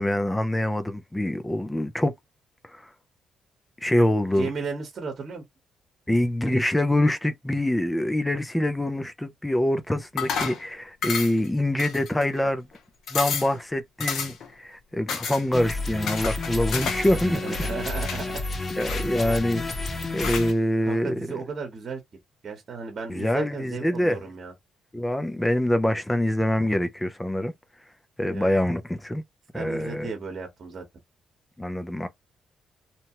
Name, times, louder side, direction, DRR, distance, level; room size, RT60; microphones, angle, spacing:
voice 1, 0.0-2.1 2.7-2.9 3.8-4.5 6.1-12.6 13.1-17.4 18.8-19.6 20.1-21.4 23.1-24.2 24.9-27.5 28.2-29.2 29.5-30.1 31.6-32.1, left 1 dB, 10° left, 0.5 m, -25 dB
voice 2, 4.3-5.4 12.4-12.5 17.2-18.4 20.8-22.0 22.4-24.5 28.3-28.5 29.5-30.8, right 4 dB, 45° right, 1.1 m, -34 dB
sound 1, 10.2-10.6 11.0-11.5 11.8-12.4 12.7-12.8 13.1-13.5 14.0-14.5 15.1-15.4 16.1-17.1 17.4-18.2 18.8-19.5 20.2-20.5, left 6 dB, 75° left, 0.8 m, -31 dB
sound 2, 15.5-20.5, left 2 dB, 35° left, 0.9 m, -30 dB
2.9 x 2.2 x 2.8 m
cardioid pair, 90°, 0 cm